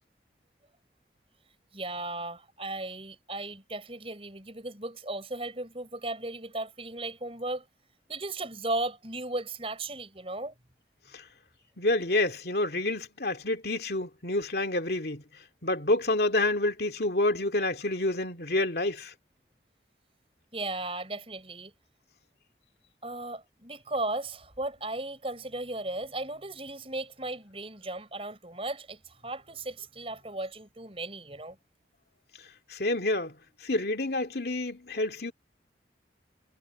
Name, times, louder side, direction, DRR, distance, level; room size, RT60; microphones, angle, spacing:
voice 1, 1.7-7.6 8.1-10.6 20.5-21.7 23.0-31.6, right 2 dB, 35° right, 6.2 m, -36 dB
voice 2, 11.8-15.2 15.6-19.1 32.7-33.4 33.6-35.3, left 2 dB, 65° left, 2.4 m, -28 dB
head